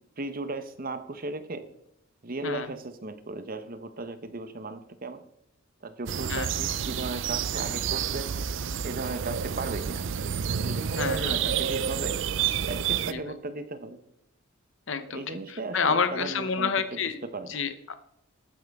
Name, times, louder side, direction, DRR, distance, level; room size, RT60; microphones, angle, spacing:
voice 1, 0.2-1.6 2.2-5.2 5.8-8.3 8.8-10.0 10.6-12.2 12.6-14.0 15.1-17.6, right 3 dB, 45° right, 10 dB, 1.0 m, -36 dB
sound 1, 6.1-13.1, right 8 dB, 60° right, 0.5 m, -29 dB
voice 2, 11.0-11.4 13.1-13.4 14.9-15.2 15.5-17.2 17.5-17.9, left 5 dB, 65° left, 11 dB, 0.9 m, -29 dB
12.0 x 9.3 x 3.6 m, 0.78 s
head